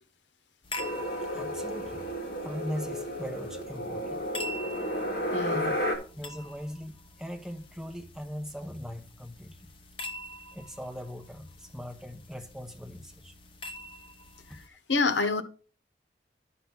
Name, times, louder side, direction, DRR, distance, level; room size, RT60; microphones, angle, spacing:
sound 1, 0.6-14.7, left 1 dB, 30° left, 0.8 m, -45 dB
sound 2, 0.8-6.0, equal, 55° left, 2.5 m, -32 dB
voice 1, 1.3-2.0 2.4-4.2 5.5-5.8 6.1-9.7 10.5-13.3, equal, 5° right, 1.0 m, -40 dB
voice 2, 5.3-5.8 14.5-14.6 14.9-15.4, left 3 dB, 85° left, 1.0 m, -27 dB
11.0 x 6.0 x 3.8 m
head